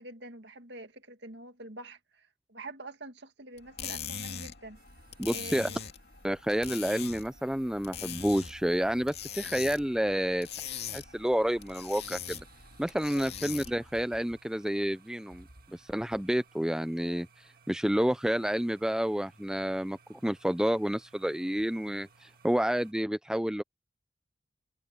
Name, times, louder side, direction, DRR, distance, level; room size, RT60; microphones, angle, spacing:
voice 1, 0.0-4.8 5.3-5.8 13.1-13.3, right 2 dB, 65° right, 2.1 m, -46 dB
sound 1, 3.6-13.9, left 8 dB, 55° left, 2.6 m, -42 dB
sound 2, 4.8-22.9, right 3 dB, 50° right, 1.8 m, -59 dB
voice 2, 5.2-5.7 6.2-10.5 10.9-12.4 12.8-15.4 15.7-17.3 17.7-23.6, equal, 5° right, 0.4 m, -29 dB
head